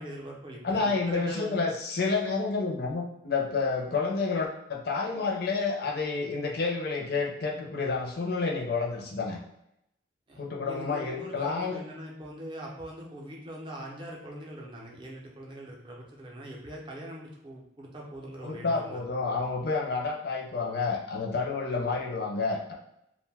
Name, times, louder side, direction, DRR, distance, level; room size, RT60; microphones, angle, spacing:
voice 1, 0.0-1.6 10.3-19.0, right 1 dB, 25° right, -2 dB, 0.5 m, -42 dB
voice 2, 0.6-9.4 10.4-11.8 18.4-22.7, left 4 dB, 55° left, 0 dB, 0.5 m, -29 dB
2.5 x 2.1 x 3.3 m, 0.80 s
head